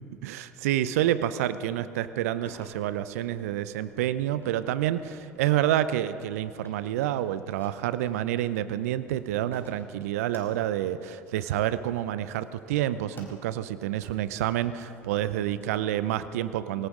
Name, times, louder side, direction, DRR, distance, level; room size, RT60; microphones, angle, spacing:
voice 1, 0.0-16.9, right 12 dB, 75° right, 14 dB, 0.5 m, -28 dB
sound 1, 2.5-15.7, left 1 dB, 25° left, 4.6 m, -56 dB
20.5 x 18.5 x 3.7 m, 2.7 s
figure-of-eight pair, 60°, 8 cm